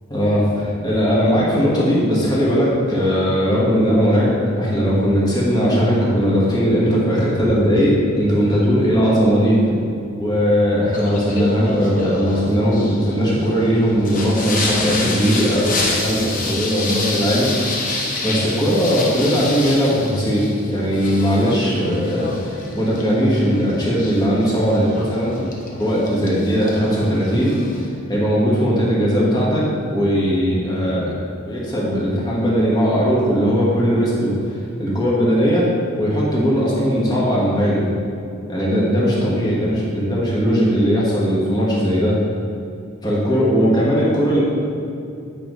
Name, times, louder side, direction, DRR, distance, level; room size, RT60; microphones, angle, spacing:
voice 1, 0.1-4.3 4.5-9.7 10.2-17.5 18.2-25.4 25.8-27.6 28.1-31.1 31.4-35.7 36.0-37.9 38.5-42.1 43.0-44.4, equal, 20° left, -6 dB, 1.5 m, -18 dB
Singing, 10.9-27.9, left 2 dB, 40° left, 0.8 m, -28 dB
8.8 x 5.3 x 3.1 m, 2.6 s
head